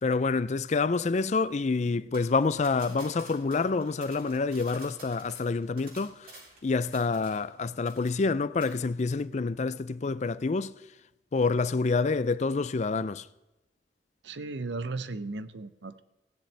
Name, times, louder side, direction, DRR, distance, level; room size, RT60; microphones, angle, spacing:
voice 1, 0.0-6.3 6.6-10.7 11.3-13.3, left 4 dB, 40° left, 0.4 m, -27 dB
sound 1, 2.1-7.6 7.9-8.3 8.6-8.8, right 2 dB, 55° right, 3.9 m, -50 dB
voice 2, 14.2-16.0, right 3 dB, 85° right, 0.7 m, -36 dB
16.0 x 10.5 x 3.3 m
head